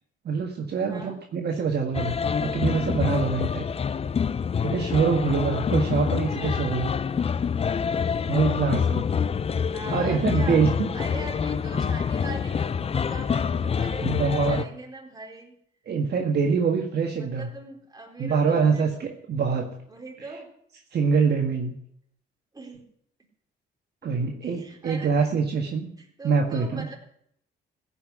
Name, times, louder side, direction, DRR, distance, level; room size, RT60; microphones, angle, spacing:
voice 1, 0.2-3.6 4.6-6.9 8.3-9.0 9.9-10.9 14.0-14.6 15.9-17.5 18.2-19.7 20.9-21.7 24.0-25.9 26.2-26.9, right 5 dB, 55° right, 1 dB, 1.7 m, -24 dB
voice 2, 0.9-1.2 6.4-6.7 9.7-10.6 10.9-15.5 17.2-18.9 19.9-20.5 22.5-22.9 24.4-25.3 26.0-26.9, right 2 dB, 20° right, 0 dB, 4.4 m, -40 dB
sound 1, 1.9-14.6, left 6 dB, 30° left, 0.5 m, -26 dB
15.0 x 5.7 x 9.7 m, 0.70 s
cardioid pair, 90°, 20 cm